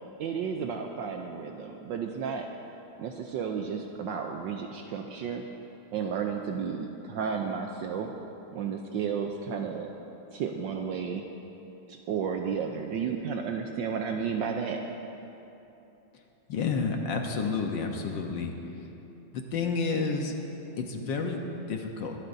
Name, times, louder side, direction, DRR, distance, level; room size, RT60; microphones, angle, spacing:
voice 1, 0.2-2.5 3.0-5.4 5.9-8.1 8.5-9.9 10.3-11.2 11.9-14.8, right 6 dB, 75° right, 3 dB, 1.2 m, -32 dB
voice 2, 16.5-18.6 19.3-20.3 20.8-21.4 21.7-22.2, left 4 dB, 65° left, 3 dB, 1.5 m, -30 dB
22.0 x 12.0 x 2.6 m, 3.0 s
omnidirectional pair, 2.3 m